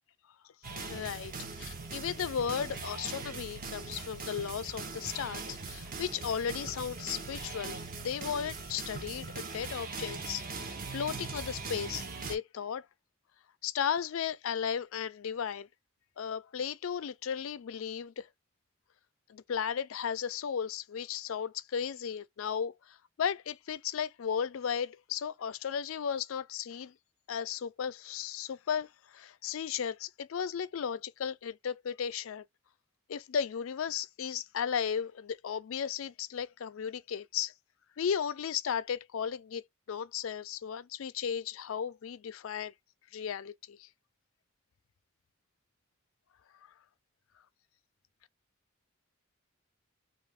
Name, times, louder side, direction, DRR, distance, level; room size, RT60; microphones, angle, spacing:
sound 1, 0.6-12.4, right 4 dB, 45° right, 0.6 m, -41 dB
voice 1, 0.8-10.4 10.9-12.9 13.6-15.7 16.2-18.3 19.3-26.9 27.3-32.4 33.1-37.5 38.0-42.7 43.1-43.9, left 7 dB, 85° left, 0.4 m, -35 dB
2.6 x 2.5 x 3.4 m
head